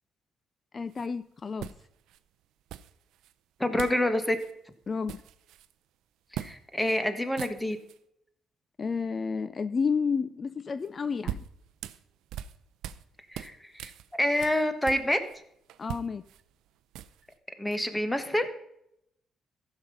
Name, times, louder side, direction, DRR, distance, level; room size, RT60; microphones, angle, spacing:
voice 1, 0.7-1.7 4.9-5.2 8.8-11.4 15.8-16.2, left 5 dB, 40° left, 14 dB, 0.4 m, -31 dB
sound 1, 0.9-1.1 1.6-2.2 2.7-3.3 3.8-4.1 4.3-4.5 4.8-5.7 6.3-6.6 6.9-7.0 7.3-8.0 10.8-13.1 13.3-15.4 15.7-17.3, right 11 dB, 85° right, 0.5 m, -41 dB
voice 2, 3.6-4.4 6.3-7.8 13.3-13.9 14.2-15.2 17.6-18.5, left 1 dB, 10° left, 10 dB, 1.3 m, -27 dB
14.5 x 6.1 x 5.5 m, 0.77 s
cardioid pair, 90°, 0 cm